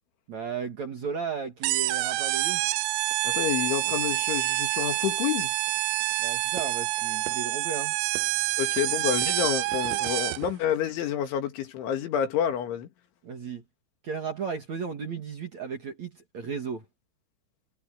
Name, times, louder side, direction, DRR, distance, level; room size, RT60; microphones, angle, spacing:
voice 1, 0.3-2.6 6.2-8.0 13.2-13.6 14.0-16.9, right 6 dB, 50° right, 2.5 m, -35 dB
sound 1, 1.6-10.5, right 20 dB, 80° right, 2.8 m, -27 dB
voice 2, 3.3-5.5 8.6-12.9, left 10 dB, 70° left, 4.4 m, -29 dB
omnidirectional pair, 5.7 m